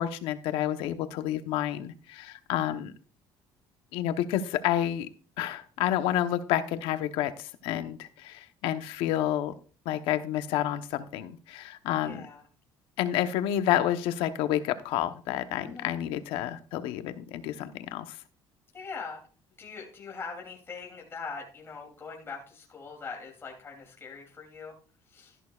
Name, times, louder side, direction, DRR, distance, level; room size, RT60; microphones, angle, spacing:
voice 1, 0.0-2.9 3.9-5.1 5.4-9.5 9.8-12.2 13.0-18.2, left 12 dB, 80° left, 10 dB, 1.0 m, -29 dB
voice 2, 12.0-12.4 15.6-15.9 18.7-19.2 19.6-24.7 25.1-25.4, left 5 dB, 25° left, -1 dB, 3.0 m, -42 dB
13.0 x 11.0 x 2.4 m, 0.39 s
cardioid pair, 125°, 9 cm